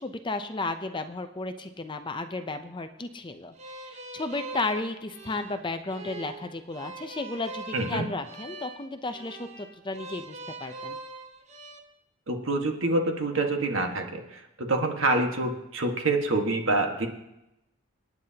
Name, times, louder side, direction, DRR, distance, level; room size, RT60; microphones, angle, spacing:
voice 1, 0.0-11.0, left 2 dB, 20° left, 8 dB, 0.6 m, -34 dB
sound 1, 3.6-11.8, right 2 dB, 30° right, 0.9 m, -42 dB
voice 2, 7.7-8.0 12.3-17.1, right 2 dB, 65° right, 3 dB, 1.6 m, -26 dB
27.0 x 9.4 x 2.9 m, 0.91 s
head